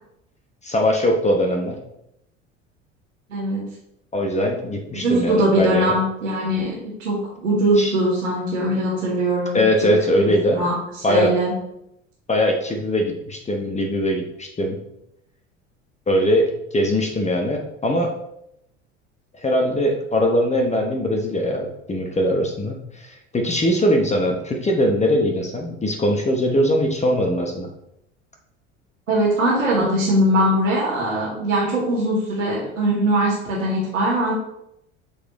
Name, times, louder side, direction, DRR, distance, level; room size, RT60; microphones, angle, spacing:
voice 1, 0.6-1.8 4.1-5.9 7.8-7.9 9.5-10.6 11.0-11.3 12.3-14.8 16.1-18.1 19.4-27.7, equal, 20° left, 2 dB, 1.0 m, -21 dB
voice 2, 3.3-3.7 4.9-6.7 7.0-9.9 10.5-11.5 29.1-34.3, right 1 dB, 85° right, -6 dB, 1.7 m, -21 dB
8.1 x 4.1 x 3.1 m, 0.79 s
figure-of-eight pair, 70°, 37 cm